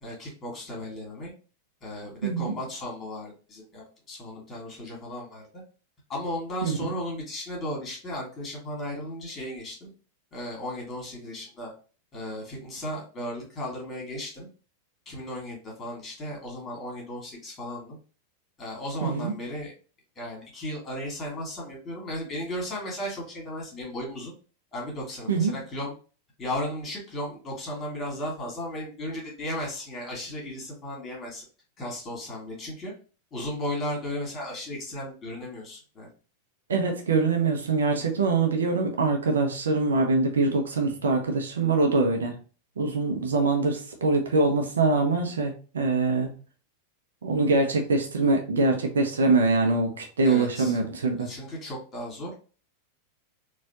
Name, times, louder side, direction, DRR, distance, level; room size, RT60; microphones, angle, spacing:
voice 1, 0.0-1.3 1.8-5.5 6.1-9.9 10.3-11.7 12.1-14.5 15.1-18.0 18.6-19.7 20.2-24.3 24.7-25.9 26.4-31.5 31.8-32.9 33.3-36.1 50.3-50.8 51.2-52.3, left 1 dB, 25° left, -2 dB, 1.9 m, -35 dB
voice 2, 2.2-2.5 6.6-6.9 19.0-19.3 25.3-25.5 36.7-42.3 42.8-46.3 47.2-51.3, right 3 dB, 65° right, 3 dB, 0.7 m, -24 dB
4.1 x 2.5 x 2.8 m, 0.36 s
figure-of-eight pair, 90°, 0 cm